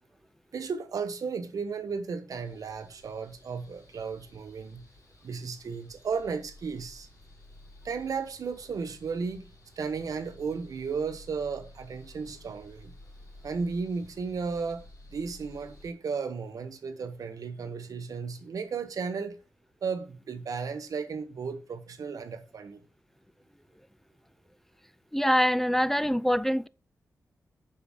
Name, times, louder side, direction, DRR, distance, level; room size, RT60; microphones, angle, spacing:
voice 1, 0.5-4.9 5.2-7.1 7.8-9.5 9.8-12.9 13.4-14.8 15.1-19.4 19.8-22.8, right 5 dB, 70° right, 1.2 m, -34 dB
sound 1, 2.3-15.9, left 1 dB, 70° left, 4.1 m, -53 dB
voice 2, 25.1-26.7, equal, 5° left, 0.4 m, -24 dB
7.3 x 5.1 x 6.5 m
cardioid pair, 65°, 6 cm